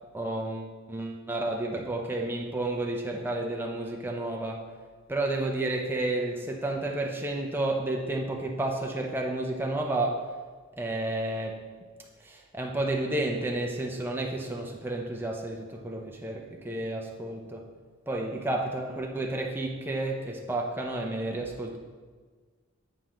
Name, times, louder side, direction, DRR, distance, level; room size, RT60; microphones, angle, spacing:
voice 1, 0.1-4.8 5.1-10.3 10.8-11.6 12.2-17.6 18.1-21.8, right 2 dB, 10° right, 0 dB, 0.6 m, -31 dB
9.1 x 4.4 x 3.8 m, 1.5 s
head